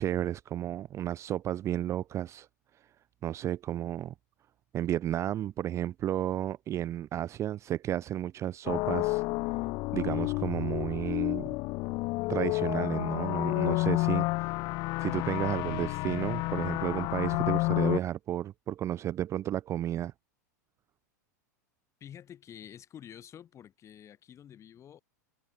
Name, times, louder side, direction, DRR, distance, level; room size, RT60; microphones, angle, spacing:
voice 1, 0.0-2.5 3.2-4.1 4.7-9.2 9.9-11.5 12.3-14.6 15.0-20.1, right 12 dB, 30° right, 0.5 m, -32 dB
sound 1, 8.7-18.0, left 23 dB, 45° left, 1.2 m, -30 dB
voice 2, 10.1-10.5 22.0-25.0, left 10 dB, 30° left, 7.6 m, -49 dB
hypercardioid pair, 95°, 10 cm